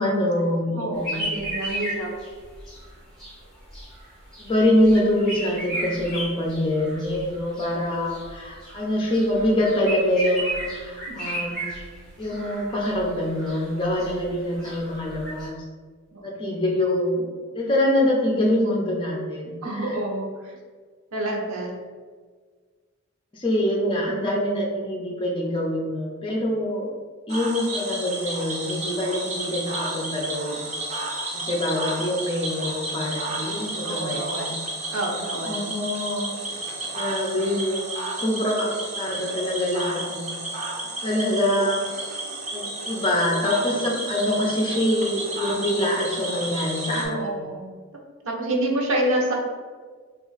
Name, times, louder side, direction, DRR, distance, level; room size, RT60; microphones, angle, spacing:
voice 1, 0.0-1.2 4.4-11.7 12.2-15.6 16.2-17.3 17.5-19.9 23.3-26.9 27.3-30.7 31.3-34.6 35.4-36.4 36.9-38.7 39.0-40.5 41.0-41.9 42.5-47.4, left 1 dB, 25° left, -2 dB, 0.6 m, -25 dB
voice 2, 0.8-2.1 11.1-11.4 16.1-16.3 19.6-20.5 21.1-21.7 24.1-24.2 33.8-34.5 34.9-35.6 41.6-41.7 46.9-47.6 48.2-49.3, right 1 dB, 85° right, 0 dB, 0.7 m, -28 dB
sound 1, 1.0-15.5, right 1 dB, ahead, 1.3 m, -35 dB
Cricket / Frog, 27.3-47.1, right 2 dB, 30° right, 0.5 m, -32 dB
3.0 x 2.4 x 3.8 m, 1.5 s
head